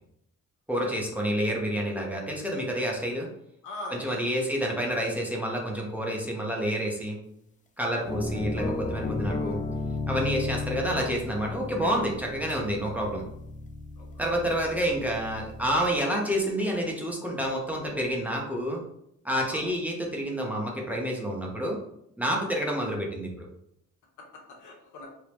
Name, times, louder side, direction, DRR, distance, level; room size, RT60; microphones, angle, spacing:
voice 1, 0.7-3.3 4.0-7.2 7.8-9.6 10.1-13.2 14.2-18.8 19.2-21.8 22.2-23.5, equal, 5° right, -2 dB, 0.8 m, -29 dB
voice 2, 3.6-4.5 7.9-8.2 10.4-10.9 14.0-14.3 19.5-19.7 22.4-22.6 24.2-25.1, left 2 dB, 80° left, 0 dB, 1.1 m, -43 dB
sound 1, 8.1-16.0, left 3 dB, 25° left, 0.4 m, -34 dB
3.3 x 2.9 x 3.0 m, 0.75 s
cardioid pair, 90°, 30 cm